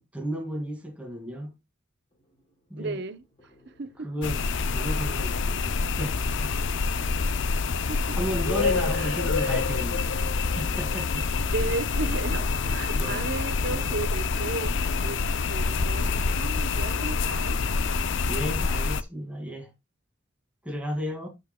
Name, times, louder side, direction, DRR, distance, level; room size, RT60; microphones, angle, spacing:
voice 1, 0.1-1.5 2.7-3.0 4.0-4.4 4.7-6.5 6.9-7.0 8.2-11.3 12.9-13.2 13.7-13.9 18.3-19.7 20.6-21.3, equal, 5° right, 2.2 m, -34 dB
sound 1, 2.1-18.9, equal, 30° left, 3.2 m, -49 dB
voice 2, 2.8-4.1 7.5-8.2 8.9-9.6 11.4-15.2 15.5-17.6, right 3 dB, 55° right, 0.8 m, -35 dB
sound 2, 4.2-19.0, left 4 dB, 60° left, 0.5 m, -27 dB
13.0 x 5.6 x 2.3 m
head